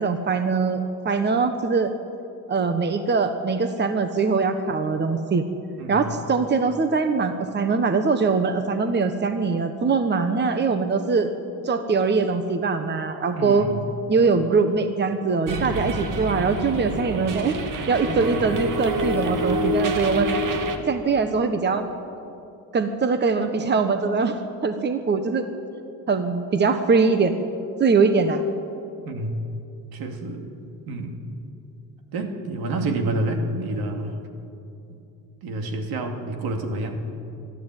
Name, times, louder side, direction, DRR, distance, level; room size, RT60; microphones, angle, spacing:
voice 1, 0.0-1.9 2.5-5.4 5.9-11.3 11.6-13.7 14.1-17.6 17.9-20.3 20.8-21.9 22.7-24.3 24.6-25.5 26.1-27.3 27.8-28.4, right 4 dB, 30° right, 8 dB, 1.3 m, -22 dB
voice 2, 5.8-6.1 13.3-13.8 18.0-18.5 29.0-29.4 29.9-30.5 30.9-31.2 32.1-34.2 35.4-37.0, right 2 dB, 75° right, 4 dB, 2.7 m, -28 dB
sound 1, 15.5-20.8, right 1 dB, 60° right, 2.3 m, -27 dB
23.0 x 13.0 x 9.2 m, 2.7 s
cardioid pair, 110°, 36 cm